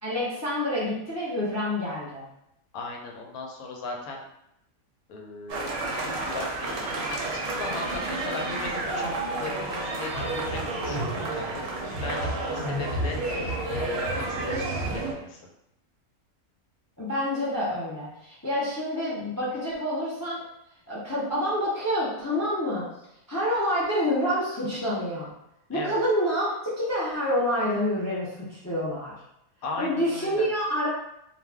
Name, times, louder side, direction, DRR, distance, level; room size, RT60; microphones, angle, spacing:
voice 1, 0.0-2.3 17.0-20.4 20.9-22.8 23.3-25.3 25.7-29.1 29.8-30.9, equal, 20° left, -7 dB, 0.4 m, -27 dB
voice 2, 2.7-4.2 5.1-9.1 9.4-15.4 25.7-26.0 29.6-30.5, left 3 dB, 80° left, 0 dB, 1.1 m, -38 dB
sound 1, 5.5-15.1, right 2 dB, 60° right, 0.7 m, -30 dB
2.4 x 2.3 x 3.3 m, 0.80 s
omnidirectional pair, 1.5 m